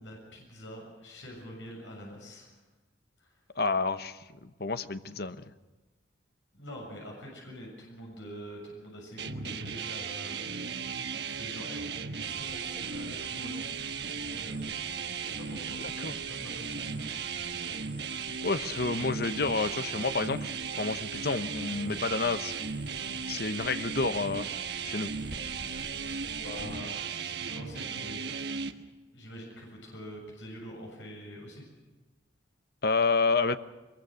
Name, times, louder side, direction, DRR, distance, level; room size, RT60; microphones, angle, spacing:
voice 1, 0.0-2.5 3.2-3.4 6.5-10.7 11.2-14.6 15.2-15.8 16.0-18.2 26.4-28.8 29.1-31.6, equal, 75° left, -1 dB, 7.2 m, -46 dB
voice 2, 3.6-5.4 16.0-16.1 18.4-20.4 20.8-22.5 23.3-24.5 24.8-25.1 32.8-33.6, left 3 dB, 55° left, 11 dB, 1.0 m, -29 dB
sound 1, 9.2-28.7, right 6 dB, 60° right, 1.3 m, -36 dB
Cricket, 12.2-26.8, right 2 dB, 10° right, 3.1 m, -50 dB
23.0 x 22.0 x 6.5 m, 1.2 s
head